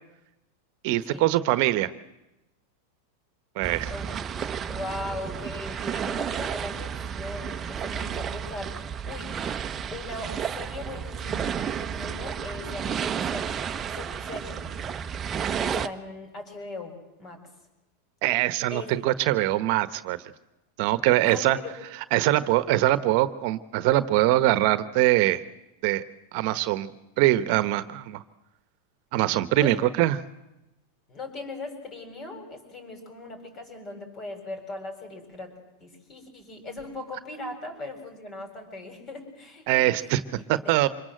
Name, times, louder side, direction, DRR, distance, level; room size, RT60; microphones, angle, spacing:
voice 1, 0.8-1.9 3.6-3.9 18.2-20.2 20.8-21.6 22.1-25.4 25.8-26.0 26.3-26.9 27.2-28.2 29.1-30.2 39.7-40.2 40.5-40.9, right 16 dB, 55° right, 13 dB, 1.2 m, -23 dB
sound 1, 3.6-15.9, right 7 dB, 25° right, 1.1 m, -32 dB
voice 2, 4.7-9.4 9.9-14.8 15.6-17.4 18.7-18.9 21.2-21.7 29.6-29.8 31.1-39.9 40.4-40.8, left 2 dB, 30° left, 6 dB, 7.6 m, -39 dB
26.0 x 21.5 x 7.8 m, 0.96 s
supercardioid pair, 125°, 0 cm